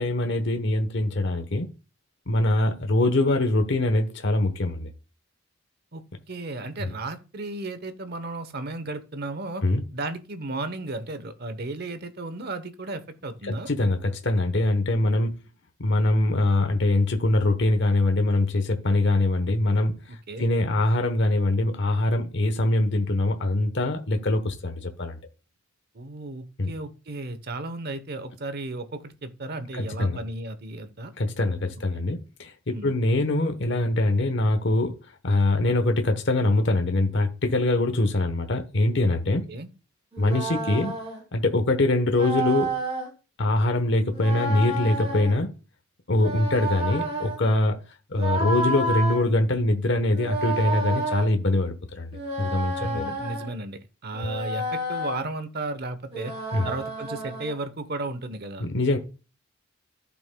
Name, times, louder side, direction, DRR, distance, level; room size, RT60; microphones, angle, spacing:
voice 1, 0.0-1.7 2.3-4.9 6.8-6.9 9.6-9.8 13.4-15.4 15.8-19.9 20.4-25.2 26.6-26.7 29.7-30.2 31.2-35.0 35.2-39.4 40.2-40.9 41.3-42.7 43.4-45.5 46.1-47.8 48.1-53.1 56.5-56.7 58.6-59.0, left 2 dB, 60° left, 1.0 m, -23 dB
voice 2, 5.9-9.6 9.9-13.7 20.1-20.5 25.9-31.1 31.9-32.0 32.7-33.0 39.5-39.7 52.8-56.4 56.6-58.7, right 2 dB, 50° right, 0.9 m, -34 dB
sound 1, 40.1-41.2 42.1-43.1 44.1-45.4 46.1-47.4 48.1-49.2 50.1-51.3 52.1-53.5 54.1-55.2 56.1-57.5, right 2 dB, 30° right, 4.2 m, -30 dB
14.5 x 6.0 x 2.3 m
head